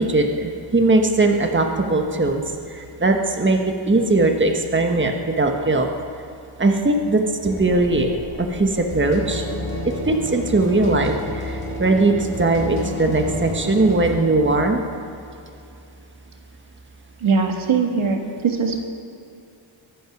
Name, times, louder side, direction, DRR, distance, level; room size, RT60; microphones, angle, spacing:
voice 1, 0.0-2.4 2.7-5.9 6.6-8.1 8.4-9.5 10.1-14.8, right 2 dB, 25° right, 4 dB, 1.4 m, -19 dB
sound 1, 7.4-14.2, left 1 dB, 25° left, 4.3 m, -30 dB
voice 2, 17.2-18.8, right 5 dB, 75° right, 3 dB, 1.7 m, -21 dB
23.0 x 9.2 x 6.0 m, 2.6 s
wide cardioid pair, 90°, 49 cm